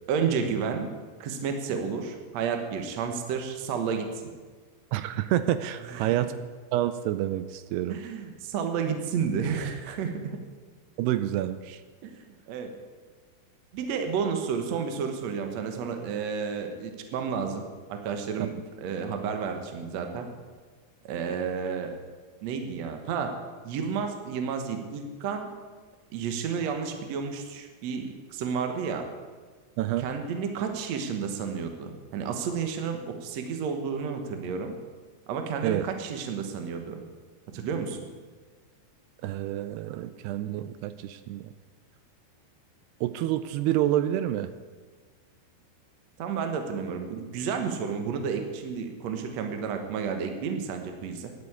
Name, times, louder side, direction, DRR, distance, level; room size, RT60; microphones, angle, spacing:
voice 1, 0.1-0.9 1.2-4.2 5.8-6.4 7.9-10.4 12.0-12.7 13.7-17.6 17.9-18.5 18.8-20.3 21.1-21.9 22.4-23.3 23.6-25.5 26.1-29.1 30.0-34.7 35.3-37.0 37.5-38.0 46.2-51.3, right 6 dB, 65° right, 5 dB, 1.7 m, -31 dB
voice 2, 4.9-6.3 6.7-8.0 11.0-11.8 29.8-30.1 35.6-35.9 39.2-41.5 43.0-44.5, right 13 dB, 85° right, 12 dB, 2.5 m, -28 dB
10.5 x 8.2 x 8.8 m, 1.5 s
omnidirectional pair, 4.8 m